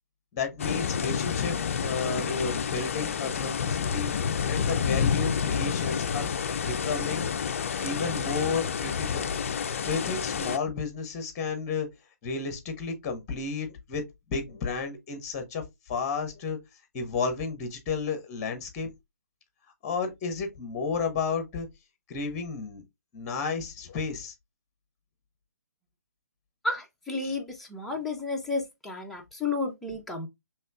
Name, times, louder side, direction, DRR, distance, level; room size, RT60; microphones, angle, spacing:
voice 1, 0.3-4.1 4.5-6.3 6.7-7.3 7.8-9.3 9.8-11.9 12.2-14.0 14.3-15.6 15.9-16.6 16.9-18.9 19.8-21.7 22.1-22.8 23.1-24.3 27.2-27.3, left 5 dB, 25° left, 1.0 m, -32 dB
sound 1, 0.6-10.6, left 7 dB, 50° left, 0.4 m, -29 dB
voice 2, 26.6-30.3, left 3 dB, ahead, 0.6 m, -32 dB
5.5 x 3.0 x 2.4 m
figure-of-eight pair, 130°, 9 cm